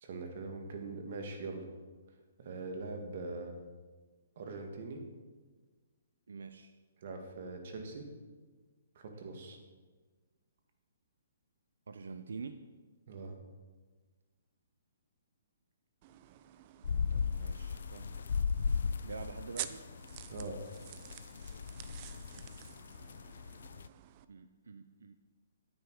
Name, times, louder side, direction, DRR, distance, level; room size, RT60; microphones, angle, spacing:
voice 1, 0.0-1.7 2.4-3.6 4.4-5.0 7.0-8.0 9.0-9.6 13.1-13.4 20.3-20.6, right 3 dB, 50° right, 4 dB, 1.8 m, -42 dB
voice 2, 6.3-6.7 11.9-12.7 17.1-18.1 19.0-19.9 23.6-23.8 24.3-25.2, right 4 dB, 90° right, 9 dB, 0.5 m, -46 dB
sound 1, 16.0-24.3, right 13 dB, 30° right, 0.4 m, -49 dB
sound 2, 16.8-23.9, left 5 dB, 75° left, 0.3 m, -37 dB
9.8 x 8.7 x 4.8 m, 1.4 s
hypercardioid pair, 160°, 0 cm